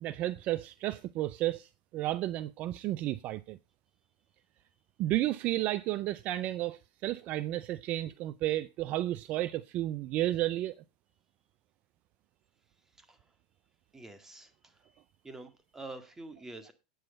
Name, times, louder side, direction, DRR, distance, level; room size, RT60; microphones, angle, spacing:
voice 1, 0.0-3.6 5.0-10.8, right 15 dB, 40° right, 0.4 m, -32 dB
voice 2, 13.0-13.3 13.9-14.9 15.2-16.7, right 2 dB, 10° right, 1.8 m, -47 dB
8.8 x 7.9 x 5.1 m
hypercardioid pair, 120°, 4 cm